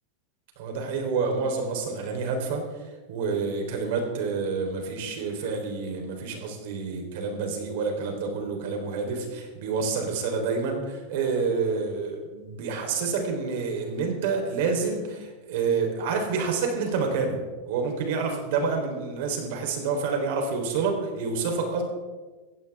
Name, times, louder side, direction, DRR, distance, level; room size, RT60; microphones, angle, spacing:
voice 1, 0.6-2.6 3.1-17.4 17.7-21.8, right 4 dB, 65° right, 3 dB, 3.8 m, -28 dB
15.5 x 15.5 x 3.6 m, 1.3 s
supercardioid pair, 140°, 0 cm